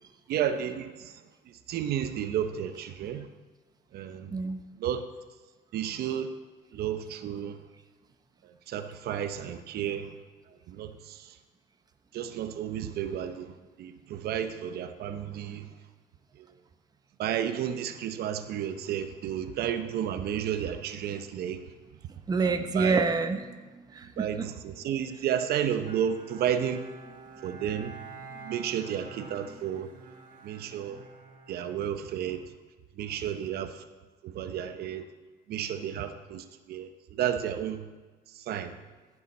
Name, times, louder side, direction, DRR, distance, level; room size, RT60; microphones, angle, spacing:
voice 1, 0.3-1.2 1.5-3.3 3.9-4.3 4.8-5.0 5.7-6.3 6.7-7.6 8.4-10.2 10.7-11.4 12.1-15.7 16.4-16.5 17.2-21.6 22.4-23.0 24.2-26.9 27.4-27.9 28.4-29.9 30.4-31.0 31.5-32.5 33.0-33.8 34.2-35.1 35.5-37.9 38.3-38.8, right 9 dB, 70° right, 9 dB, 0.7 m, -32 dB
voice 2, 4.3-4.6 22.3-24.5, right 4 dB, 25° right, 7 dB, 0.7 m, -28 dB
Bowed string instrument, 25.8-32.5, right 4 dB, 55° right, 1.5 m, -48 dB
14.5 x 7.0 x 4.2 m, 1.3 s
cardioid pair, 110°, 17 cm